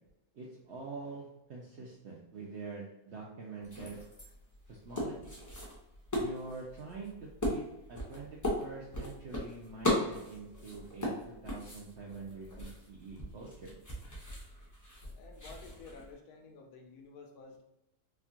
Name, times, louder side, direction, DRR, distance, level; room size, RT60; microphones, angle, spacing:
voice 1, 0.3-4.0 4.7-5.4 6.2-13.7, right 4 dB, 65° right, -3 dB, 0.7 m, -45 dB
sound 1, 3.6-16.1, left 1 dB, 20° left, 0.5 m, -38 dB
voice 2, 15.1-17.6, left 4 dB, 70° left, 2 dB, 1.0 m, -52 dB
4.3 x 2.3 x 2.8 m, 0.93 s
omnidirectional pair, 1.8 m